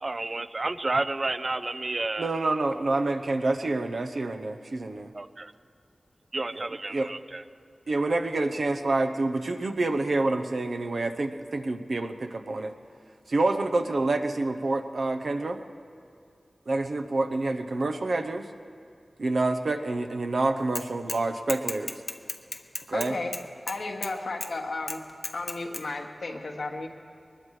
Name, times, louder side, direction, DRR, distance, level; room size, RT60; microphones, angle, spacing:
voice 1, 0.0-2.3 5.1-5.5 6.3-7.4, right 2 dB, 45° right, 12 dB, 0.5 m, -31 dB
voice 2, 2.2-5.1 6.5-6.6 6.9-7.1 7.9-12.7 13.3-15.6 16.7-18.5 19.2-22.0 22.9-23.2, right 2 dB, 75° right, 6 dB, 0.8 m, -27 dB
Bicycle / Mechanisms, 20.7-21.2 21.5-24.1 24.4-24.5 24.9-25.8, left 2 dB, 45° left, 0.7 m, -34 dB
voice 3, 22.9-23.3 23.7-25.0 25.3-26.9, left 3 dB, 90° left, 2 dB, 1.3 m, -33 dB
22.0 x 20.5 x 3.3 m, 2.3 s
wide cardioid pair, 70°, 0 cm